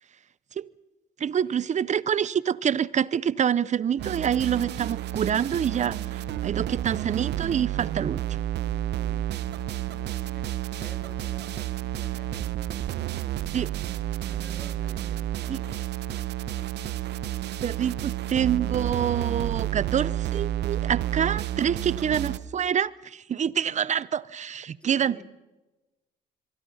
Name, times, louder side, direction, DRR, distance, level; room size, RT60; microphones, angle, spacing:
voice 1, 1.2-8.4 13.5-13.7 15.5-15.6 17.6-25.2, right 8 dB, 40° right, 0.8 m, -26 dB
sound 1, 4.0-22.4, right 12 dB, 75° right, 1.0 m, -30 dB
voice 2, 6.3-7.0 8.8-12.5 14.3-16.3 21.0-21.8 24.8-25.2, left 1 dB, 5° left, 3.1 m, -52 dB
26.0 x 23.0 x 5.7 m
cardioid pair, 85°, 18 cm